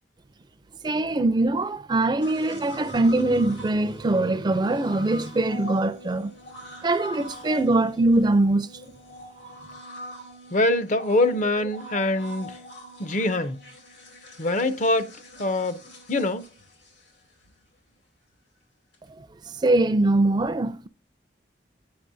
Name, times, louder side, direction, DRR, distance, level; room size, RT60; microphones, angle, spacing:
voice 1, 0.8-6.3 6.8-8.7 19.6-20.9, right 2 dB, 25° right, 0.4 m, -22 dB
sound 1, 2.2-17.5 18.9-19.0, left 1 dB, 80° left, 2.6 m, -43 dB
voice 2, 10.5-12.5 13.0-13.6 14.4-15.1 15.4-15.8 16.1-16.4, left 2 dB, 45° left, 0.5 m, -23 dB
8.7 x 5.3 x 2.6 m
head